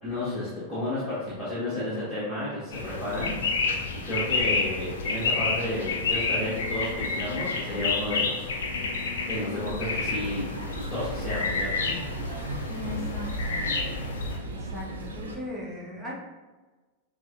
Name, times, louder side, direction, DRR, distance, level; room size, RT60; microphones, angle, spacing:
voice 1, 0.0-3.3 4.0-8.9 9.3-10.5 10.8-11.9 12.4-12.6, left 1 dB, 5° left, -12 dB, 1.3 m, -32 dB
sound 1, 2.7-14.4, left 4 dB, 65° left, 0.5 m, -30 dB
sound 2, 10.0-15.4, right 2 dB, 65° right, 0.5 m, -36 dB
voice 2, 12.7-13.6 14.5-16.1, left 1 dB, 15° right, -4 dB, 1.0 m, -38 dB
6.0 x 2.1 x 2.5 m, 1.3 s
figure-of-eight pair, 90°, 0 cm